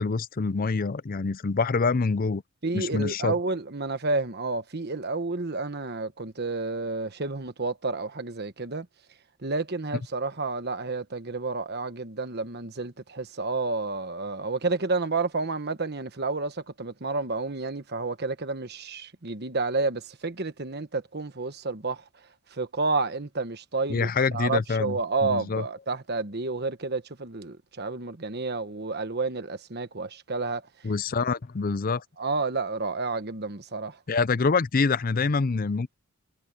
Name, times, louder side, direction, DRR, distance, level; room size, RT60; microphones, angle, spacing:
voice 1, 0.0-2.4 2.7-3.3 23.9-25.0 25.2-25.6 30.8-32.0 34.1-35.9, left 4 dB, 40° left, 0.5 m, -26 dB
voice 2, 2.6-8.9 9.4-22.0 22.5-30.6 32.2-34.0, right 3 dB, 45° right, 1.3 m, -30 dB
head